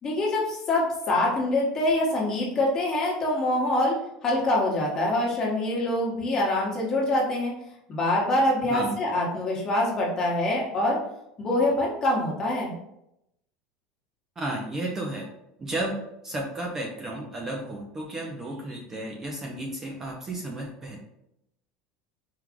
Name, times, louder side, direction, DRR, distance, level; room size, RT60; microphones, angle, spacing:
voice 1, 0.0-4.0 4.2-7.5 7.9-11.0 11.4-12.7, left 1 dB, 25° left, -3 dB, 1.3 m, -25 dB
voice 2, 14.4-15.3 15.6-21.0, right 1 dB, 20° right, 0 dB, 0.6 m, -33 dB
4.6 x 2.4 x 3.7 m, 0.81 s
supercardioid pair, 145°, 2 cm